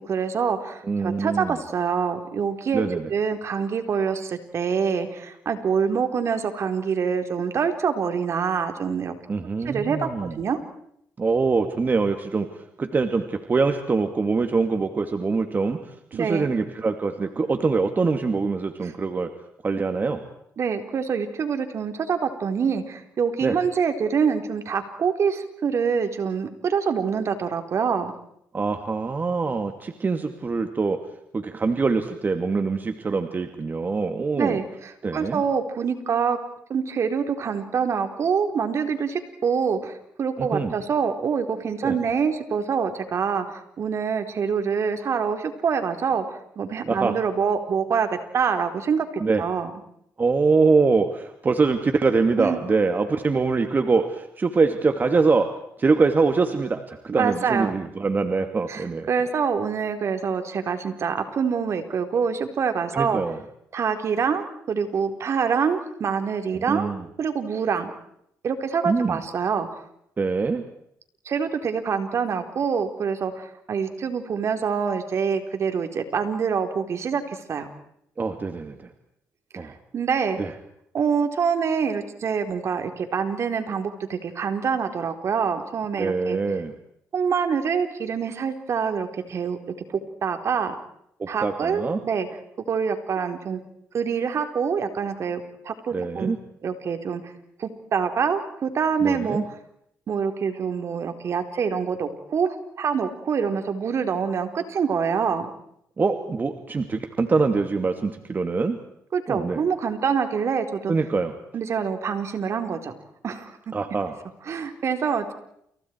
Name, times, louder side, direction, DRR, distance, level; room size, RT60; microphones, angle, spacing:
voice 1, 0.1-9.1 9.6-10.1 10.4-10.6 16.1-16.6 18.8-18.9 20.6-28.1 34.4-36.4 36.7-49.7 52.4-52.6 57.1-57.7 58.7-63.2 63.7-66.9 67.2-67.9 68.4-69.7 71.3-77.7 79.5-80.4 80.9-86.4 87.1-89.6 89.9-90.7 91.3-92.3 92.7-93.6 93.9-96.3 96.6-97.2 97.6-99.4 100.1-105.5 109.1-110.9 111.5-112.9 113.2-113.7 114.5-115.3, right 6 dB, 55° right, 7 dB, 4.2 m, -25 dB
voice 2, 0.8-1.6 2.7-3.1 9.3-10.3 11.2-12.5 12.8-19.3 19.6-20.2 23.4-23.6 28.5-31.0 31.3-34.6 35.0-35.4 40.4-40.7 41.8-42.0 46.9-47.2 49.2-49.4 50.2-59.1 62.9-63.4 66.7-67.0 68.8-69.2 70.2-70.6 78.2-78.9 79.6-79.7 80.4-80.5 86.0-86.7 91.2-92.0 95.9-96.4 99.0-99.4 106.0-108.8 109.3-109.6 110.9-111.3 113.7-114.1, right 4 dB, 35° right, 7 dB, 2.5 m, -24 dB
29.5 x 29.5 x 4.7 m, 0.74 s
cardioid pair, 95°, 6 cm